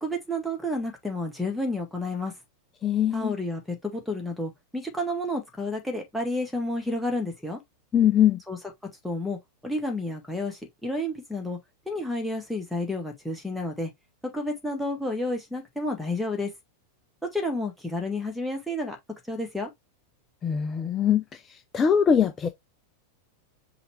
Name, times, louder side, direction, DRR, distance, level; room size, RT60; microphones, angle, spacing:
voice 1, 0.0-2.3 3.1-7.6 8.5-8.6 9.0-9.4 9.6-11.6 11.9-13.9 14.3-16.5 17.3-19.0 19.3-19.7, left 1 dB, ahead, 1.5 m, -30 dB
voice 2, 2.8-3.3 7.9-8.4 20.4-22.5, left 8 dB, 20° left, 0.5 m, -22 dB
5.7 x 2.5 x 3.2 m
figure-of-eight pair, 90°, 0 cm